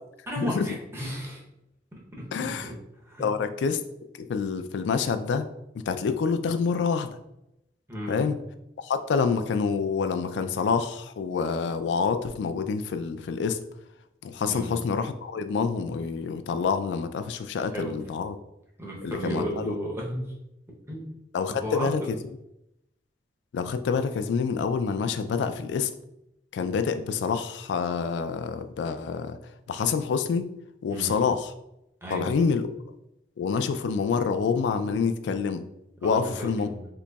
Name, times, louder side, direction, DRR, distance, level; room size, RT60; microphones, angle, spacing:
voice 1, 0.3-1.4 1.9-3.3 7.9-8.3 14.5-14.8 17.6-18.1 18.8-20.3 20.9-21.2 21.5-22.1 30.9-31.2 32.0-32.4 36.0-36.9, equal, 15° right, -2 dB, 0.7 m, -34 dB
voice 2, 2.3-2.6 3.2-3.8 4.2-5.4 5.7-7.1 8.1-8.4 8.8-13.6 14.2-18.4 19.0-19.7 21.3-22.0 23.5-25.9 26.5-29.4 29.7-30.5 30.8-31.5 32.1-32.6 33.4-35.6 36.0-36.7, left 5 dB, 75° left, 10 dB, 0.3 m, -27 dB
3.9 x 2.9 x 2.2 m, 0.85 s
head